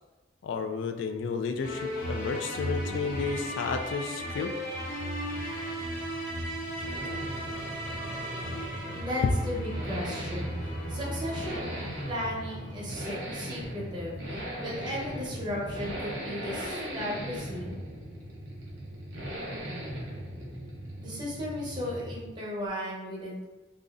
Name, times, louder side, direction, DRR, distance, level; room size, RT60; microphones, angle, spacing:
voice 1, 0.4-4.5, left 5 dB, 90° left, 6 dB, 0.3 m, -32 dB
sound 1, 1.6-13.0, equal, 50° left, 0.8 m, -36 dB
Accelerating revving vroom, 4.5-22.4 22.7-22.8, equal, 70° right, 0.8 m, -39 dB
voice 2, 8.9-11.7 12.1-17.8 21.0-23.4, left 1 dB, 25° right, -5 dB, 0.8 m, -36 dB
2.5 x 2.0 x 3.5 m, 1.1 s
head